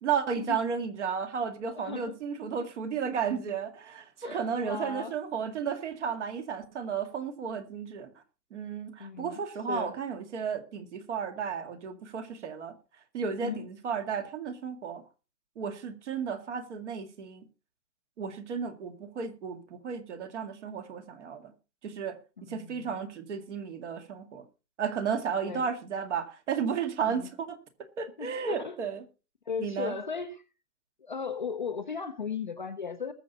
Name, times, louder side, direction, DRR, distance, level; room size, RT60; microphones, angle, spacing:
voice 1, 0.0-8.1 8.5-12.7 13.1-15.0 15.6-17.4 18.2-21.5 21.8-24.4 24.8-27.6 28.0-29.0 29.6-29.9, right 6 dB, 45° right, 2.1 m, -33 dB
voice 2, 1.8-2.2 4.2-5.1 9.0-9.4 9.7-10.0 13.4-13.7 22.4-23.0 25.4-25.7 27.0-27.3 28.2-28.8 29.5-30.4 31.0-33.1, left 5 dB, 30° left, 0.5 m, -36 dB
20.5 x 7.1 x 4.0 m
hypercardioid pair, 170°, 49 cm